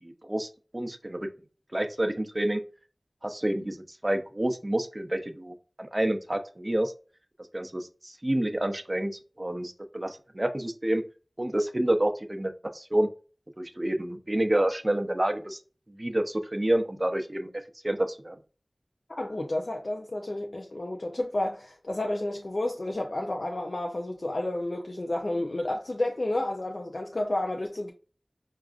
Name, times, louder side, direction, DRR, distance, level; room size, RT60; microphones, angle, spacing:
voice 1, 0.0-1.3 1.7-2.6 3.2-6.9 7.5-11.0 11.4-13.1 13.6-15.6 15.9-17.5 17.8-18.4, right 1 dB, 30° right, 0.5 m, -28 dB
voice 2, 19.2-27.9, left 1 dB, 70° left, 0.4 m, -31 dB
4.6 x 2.4 x 2.4 m
wide cardioid pair, 45°, 0 cm